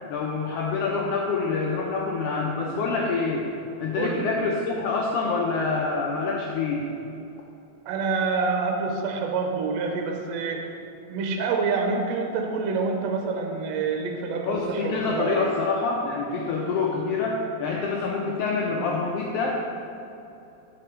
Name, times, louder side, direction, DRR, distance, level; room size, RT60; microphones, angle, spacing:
voice 1, 0.1-3.5 3.8-6.9 14.4-19.6, left 4 dB, 85° left, -1 dB, 1.4 m, -26 dB
voice 2, 7.9-10.8 11.1-15.5, right 4 dB, 75° right, 2 dB, 1.8 m, -27 dB
10.0 x 4.2 x 4.4 m, 2.8 s
omnidirectional pair, 3.3 m